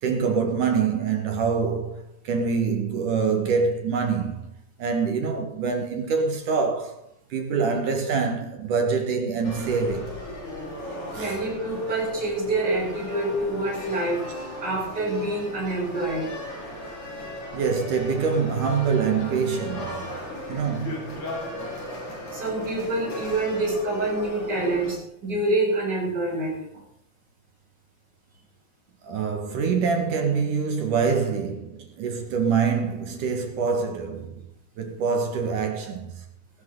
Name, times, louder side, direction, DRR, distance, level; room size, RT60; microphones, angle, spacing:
voice 1, 0.0-4.5 4.8-7.0 7.3-10.2 11.1-11.4 17.5-21.4 29.0-34.5 34.8-36.2, right 5 dB, 55° right, 2.8 m, -25 dB
sound 1, 9.4-25.0, left 1 dB, 45° left, 5.4 m, -37 dB
voice 2, 11.1-16.3 22.3-26.8, right 2 dB, 25° right, 7.9 m, -27 dB
17.5 x 15.0 x 3.9 m
omnidirectional pair, 4.8 m